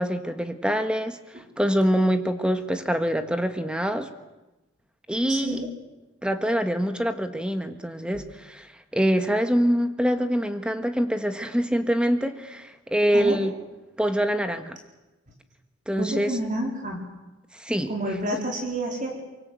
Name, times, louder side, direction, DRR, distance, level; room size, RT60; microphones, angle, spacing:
voice 1, 0.0-4.1 5.1-5.6 6.2-13.5 14.0-14.8 15.9-16.3 17.5-17.9, equal, 5° right, 8 dB, 1.5 m, -25 dB
voice 2, 5.3-5.7 8.1-8.2 13.1-13.4 16.0-17.0 17.9-19.2, right 1 dB, 40° right, 1 dB, 4.1 m, -29 dB
25.0 x 23.5 x 7.8 m, 1.0 s
head